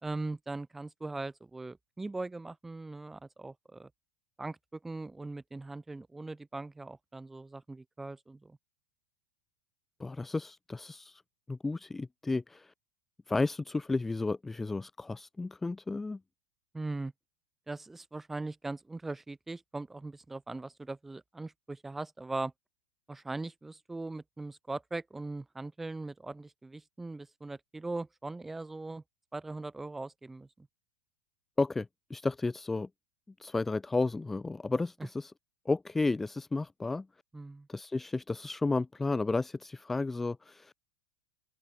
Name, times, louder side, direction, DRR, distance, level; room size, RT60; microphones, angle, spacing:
voice 1, 0.0-3.9 4.4-8.6 16.7-17.1 17.7-22.5 23.1-29.0 29.3-30.7 37.3-37.7, right 2 dB, 5° right, 0.8 m, -40 dB
voice 2, 10.0-11.2 11.5-12.7 13.3-16.2 31.6-32.9 33.4-35.3 35.7-37.1 37.7-40.7, left 3 dB, 10° left, 0.4 m, -32 dB
supercardioid pair, 145°, 3 cm